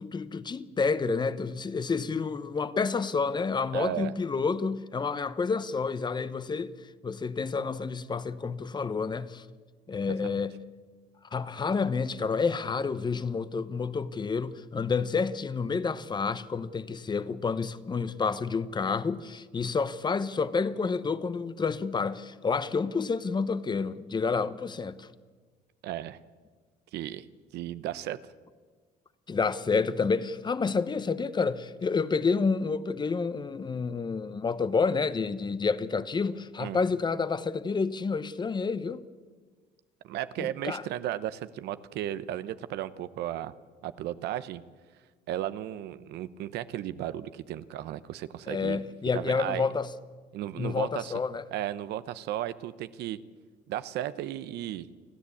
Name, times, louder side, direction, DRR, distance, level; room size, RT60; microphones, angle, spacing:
voice 1, 0.0-6.7 7.0-9.4 9.9-10.6 11.3-25.1 29.3-39.0 40.4-40.8 48.5-49.9 50.6-51.4, left 4 dB, 25° left, 0.9 m, -29 dB
voice 2, 3.7-4.1 10.2-10.4 25.8-26.2 26.9-27.3 27.5-28.2 36.6-36.8 40.0-43.5 43.8-44.6 45.3-48.8 49.1-49.6 50.3-51.1 51.5-53.2 53.7-54.9, right 12 dB, 80° right, 0.9 m, -34 dB
29.5 x 10.5 x 8.4 m
cardioid pair, 110°, 17 cm